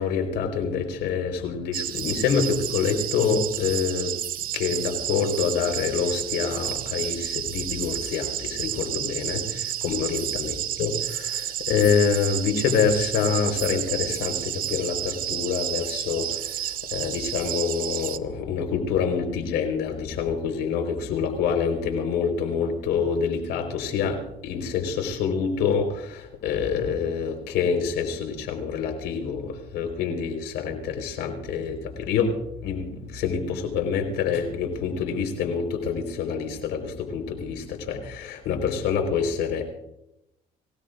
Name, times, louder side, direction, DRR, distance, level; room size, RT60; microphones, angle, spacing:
voice 1, 0.0-39.6, left 6 dB, 85° left, 4 dB, 4.4 m, -26 dB
sound 1, 1.7-18.2, right 11 dB, 60° right, 0.7 m, -31 dB
26.0 x 17.0 x 2.6 m, 0.83 s
cardioid pair, 110°, 17 cm